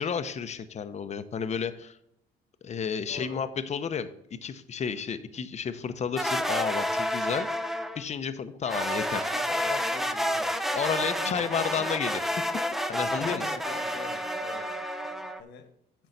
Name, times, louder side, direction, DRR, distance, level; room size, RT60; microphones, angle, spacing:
voice 1, 0.0-2.0 2.6-4.1 4.4-7.5 7.9-9.3 10.7-12.2 12.9-13.4, left 7 dB, 40° left, 9 dB, 0.8 m, -31 dB
voice 2, 3.1-3.4 9.3-10.8 11.2-11.9 13.0-14.7 15.4-15.7, left 6 dB, 75° left, 7 dB, 1.5 m, -43 dB
sound 1, 6.2-8.1 8.7-15.4, equal, ahead, 0.6 m, -30 dB
9.0 x 6.3 x 4.1 m, 0.75 s
supercardioid pair, 80°, 18 cm